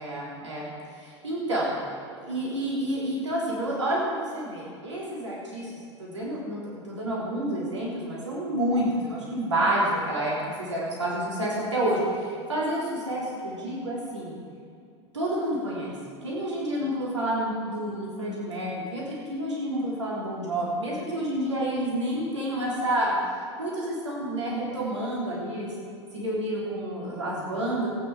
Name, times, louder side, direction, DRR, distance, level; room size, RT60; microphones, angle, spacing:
voice 1, 0.0-1.7 2.2-14.4 15.1-15.9 16.2-23.1 23.6-25.7 26.1-27.9, right 1 dB, 80° right, -6 dB, 3.2 m, -29 dB
17.5 x 9.4 x 4.7 m, 2.4 s
figure-of-eight pair, 80°, 15 cm